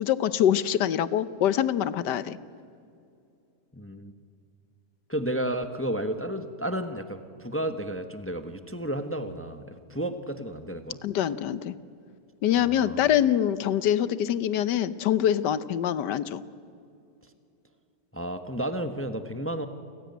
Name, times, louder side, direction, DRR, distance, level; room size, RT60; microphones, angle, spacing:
voice 1, 0.0-2.4 11.0-11.7 12.4-16.4, left 10 dB, 75° left, 16 dB, 1.4 m, -24 dB
voice 2, 3.7-4.1 5.1-11.0 12.6-13.1 18.1-19.7, right 1 dB, 10° left, 8 dB, 0.9 m, -32 dB
28.5 x 16.5 x 9.4 m, 2.5 s
omnidirectional pair, 1.9 m